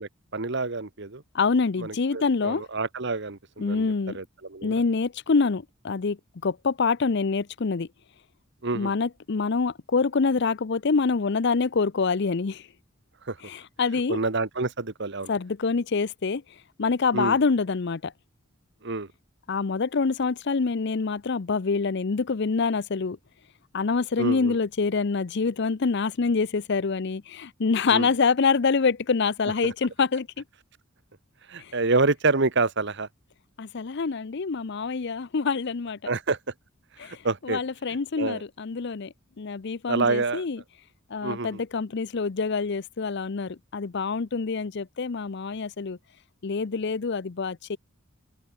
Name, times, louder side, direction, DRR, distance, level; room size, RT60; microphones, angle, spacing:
voice 1, 0.0-1.2 1.8-4.7 8.6-8.9 13.3-13.4 14.1-15.3 17.1-17.4 18.8-19.1 24.2-24.6 27.9-28.1 29.6-29.7 31.5-33.1 36.0-36.4 37.0-37.6 38.2-38.4 39.9-40.4 41.2-41.6, right 3 dB, 60° right, 1.4 m, -27 dB
voice 2, 1.3-2.6 3.6-4.2 4.6-6.2 6.4-7.9 8.7-12.6 13.4-14.2 15.3-16.4 16.8-18.1 19.5-23.2 23.7-30.3 31.6-31.7 33.6-36.0 37.0-37.2 37.4-40.6 41.1-46.0 46.4-47.8, left 4 dB, 55° left, 0.6 m, -26 dB
head